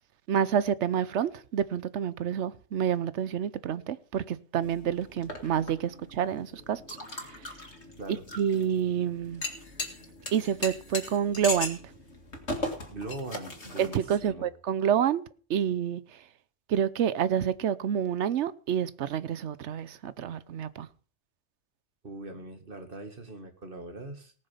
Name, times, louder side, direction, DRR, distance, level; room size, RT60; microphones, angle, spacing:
voice 1, 0.3-7.0 8.4-9.4 10.3-11.8 13.8-15.2 15.5-16.0 16.7-20.9, right 8 dB, 85° right, 1.0 m, -28 dB
sound 1, 4.6-14.3, left 2 dB, 80° left, 2.3 m, -39 dB
voice 2, 12.9-14.5 22.0-24.3, right 2 dB, 50° right, 2.1 m, -41 dB
18.5 x 6.6 x 5.6 m
omnidirectional pair, 1.1 m